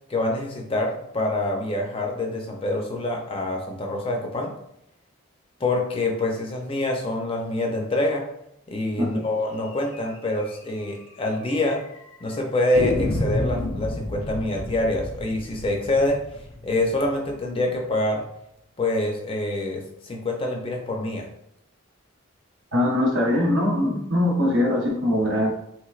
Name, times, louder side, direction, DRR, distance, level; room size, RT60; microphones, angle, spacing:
voice 1, 0.1-4.5 5.6-8.2 8.7-11.8 12.2-16.2 16.6-18.2 18.8-21.3, left 2 dB, 25° left, 1 dB, 0.4 m, -26 dB
sound 1, 9.9-10.1 10.4-10.5 10.8-10.9 11.5-12.0 12.8-17.5, left 1 dB, 85° left, 0.6 m, -30 dB
voice 2, 22.7-25.5, left 1 dB, 65° right, -2 dB, 0.8 m, -22 dB
3.2 x 3.1 x 2.3 m, 0.78 s
head